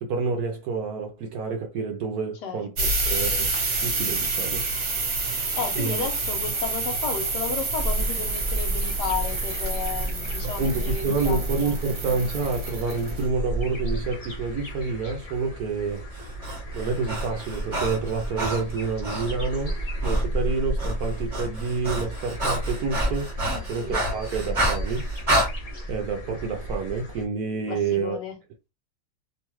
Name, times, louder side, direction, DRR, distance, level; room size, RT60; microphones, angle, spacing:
voice 1, 0.0-3.5 3.8-5.0 5.7-6.1 10.4-16.0 16.7-23.3 23.7-25.1 25.9-28.2, right 4 dB, 70° right, 1.0 m, -28 dB
voice 2, 2.4-2.9 5.5-11.8 23.5-24.0 27.7-28.4, left 6 dB, 70° left, 1.2 m, -33 dB
sound 1, 2.8-13.3, right 3 dB, 50° right, 1.3 m, -28 dB
sound 2, 7.7-27.2, right 1 dB, 55° left, 0.4 m, -32 dB
Breathing, 16.1-19.4 20.0-20.3 20.5-25.5, right 1 dB, 30° right, 1.0 m, -29 dB
3.1 x 2.2 x 3.0 m
omnidirectional pair, 2.0 m